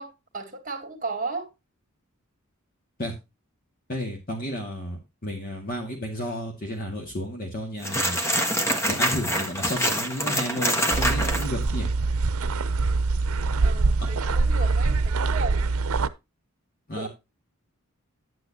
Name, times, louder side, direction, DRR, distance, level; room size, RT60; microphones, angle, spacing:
voice 1, 0.0-1.5 13.6-15.6 16.9-17.1, right 3 dB, 40° right, 2.1 m, -34 dB
voice 2, 3.9-8.2 8.9-11.9 16.9-17.1, equal, 40° left, 2.1 m, -32 dB
sound 1, 7.8-11.5, equal, 15° left, 1.4 m, -25 dB
sound 2, 10.9-16.1, right 3 dB, 90° right, 0.6 m, -24 dB
10.5 x 8.7 x 2.8 m
head